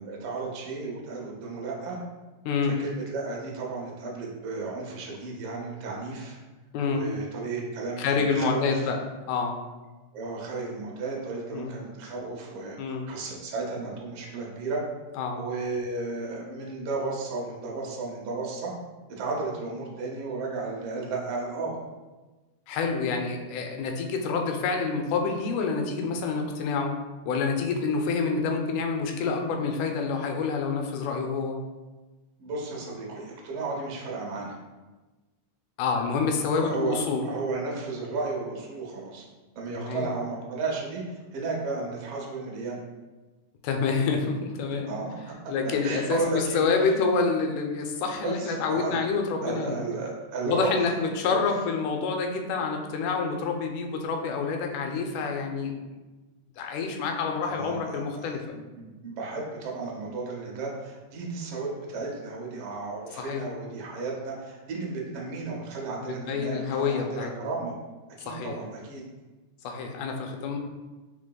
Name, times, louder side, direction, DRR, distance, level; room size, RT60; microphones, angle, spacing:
voice 1, 0.0-2.0 2.6-6.4 6.9-8.9 10.1-12.8 13.1-14.8 15.4-18.7 19.1-21.8 32.4-34.6 36.5-39.2 39.5-42.8 44.9-45.2 45.6-46.7 48.2-49.0 49.4-50.8 51.2-51.4 57.4-58.2 58.5-67.7 68.2-69.0, right 3 dB, 70° right, -2 dB, 1.4 m, -34 dB
voice 2, 2.5-2.8 6.7-7.0 8.0-9.0 9.3-9.6 11.5-11.7 12.8-13.1 15.2-15.4 22.7-26.9 27.3-31.6 35.8-37.3 39.8-40.1 43.6-45.0 45.5-49.8 50.5-55.7 56.6-58.4 63.2-63.5 66.0-67.5 68.2-68.6 69.6-70.6, left 4 dB, 90° left, 3 dB, 2.1 m, -27 dB
4.8 x 3.7 x 2.3 m, 1.2 s
omnidirectional pair, 3.5 m